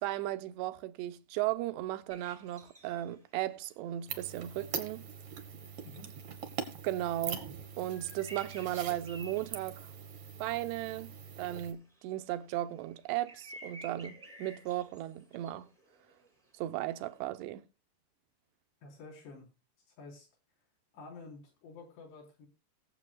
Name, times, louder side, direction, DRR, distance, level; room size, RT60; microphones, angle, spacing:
voice 1, 0.0-5.0 6.8-7.5 7.8-9.9 10.4-11.1 11.4-15.7 16.6-17.7, right 14 dB, 85° right, 2.9 m, -36 dB
sound 1, 2.1-3.6 3.9-4.0 4.3-4.4 4.7-5.0 5.4-10.7 11.0-17.2, right 1 dB, 5° right, 1.4 m, -54 dB
sound 2, 4.1-11.7, right 7 dB, 55° right, 1.6 m, -43 dB
voice 2, 18.8-19.5 19.9-20.3 20.9-22.5, left 3 dB, 70° left, 6.0 m, -50 dB
21.5 x 7.7 x 2.3 m
omnidirectional pair, 5.0 m